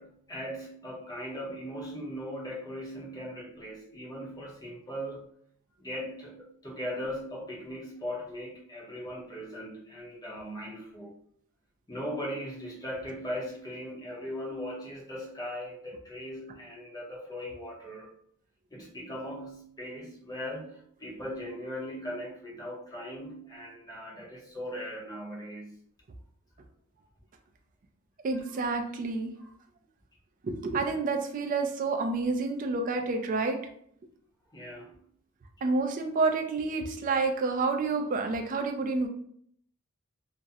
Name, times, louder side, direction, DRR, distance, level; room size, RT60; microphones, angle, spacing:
voice 1, 0.0-5.3 5.8-11.2 11.9-18.1 18.7-25.7 28.3-28.4 29.4-29.5 34.5-35.0, equal, 15° left, -3 dB, 0.6 m, -39 dB
voice 2, 28.2-29.3 30.4-33.6 35.6-39.1, right 3 dB, 40° right, 5 dB, 0.3 m, -29 dB
2.4 x 2.0 x 2.6 m, 0.66 s
head